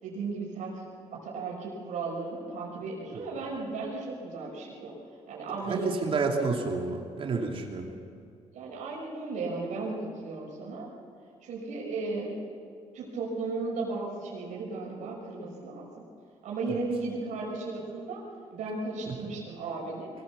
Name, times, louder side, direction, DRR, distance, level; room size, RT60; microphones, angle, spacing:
voice 1, 0.0-0.8 1.1-5.0 5.3-6.0 8.5-10.9 11.4-12.4 12.9-16.1 16.4-18.2 18.5-20.1, right 3 dB, 85° right, -3 dB, 5.5 m, -35 dB
voice 2, 5.7-7.9 16.7-16.8 19.1-19.2, right 4 dB, 45° right, 1 dB, 3.0 m, -30 dB
23.5 x 17.0 x 7.2 m, 2.3 s
cardioid pair, 115°, 13 cm